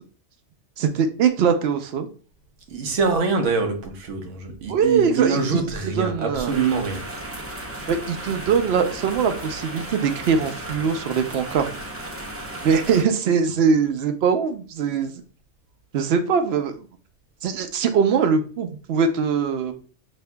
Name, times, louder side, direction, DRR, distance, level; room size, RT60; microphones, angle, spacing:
voice 1, 0.8-2.1 4.7-5.6 6.0-6.5 7.9-11.7 12.6-15.1 15.9-16.7 17.4-19.7, right 6 dB, 65° right, 0.8 m, -22 dB
voice 2, 2.7-7.1, right 4 dB, 85° right, 1.2 m, -24 dB
sound 1, 6.5-13.0, right 1 dB, 25° right, 0.3 m, -35 dB
6.4 x 2.7 x 2.2 m
omnidirectional pair, 1.2 m